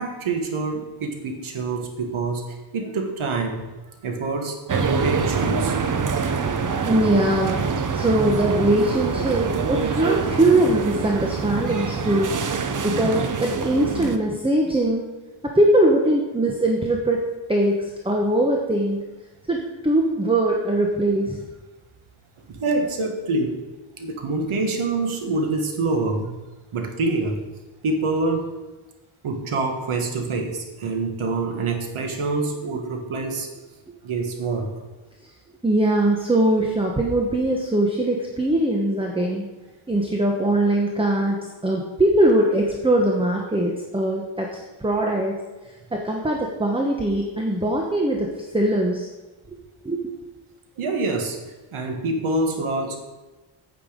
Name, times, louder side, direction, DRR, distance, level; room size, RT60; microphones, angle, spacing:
voice 1, 0.0-3.6 4.0-5.8 22.5-23.6 24.0-26.3 26.7-27.4 27.8-28.5 29.2-33.5 34.0-34.7 50.8-51.4 51.7-53.0, right 3 dB, 80° right, 4 dB, 1.7 m, -26 dB
sound 1, 4.7-14.2, right 5 dB, 40° right, 0.8 m, -25 dB
voice 2, 6.8-12.3 12.8-15.0 15.4-17.2 17.5-19.0 19.5-21.4 35.6-39.5 39.9-45.4 45.9-49.1 49.5-49.6 49.8-50.1, right 1 dB, 10° right, 0 dB, 1.0 m, -21 dB
9.2 x 8.1 x 5.1 m, 1.1 s
wide cardioid pair, 135°, 49 cm